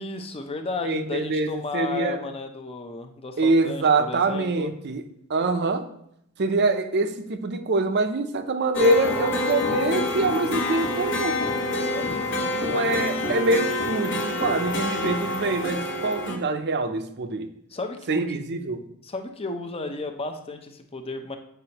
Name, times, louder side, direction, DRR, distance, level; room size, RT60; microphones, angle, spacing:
voice 1, 0.0-4.7 11.9-13.4 17.7-18.4 19.0-21.4, left 3 dB, 25° left, 6 dB, 0.6 m, -34 dB
voice 2, 0.8-2.2 3.4-5.0 5.3-5.9 6.4-11.4 12.5-17.5 18.1-18.8, right 2 dB, 50° right, 8 dB, 0.6 m, -24 dB
sound 1, 8.7-16.4, left 2 dB, 60° left, 1.1 m, -27 dB
8.0 x 5.2 x 2.9 m, 0.75 s
head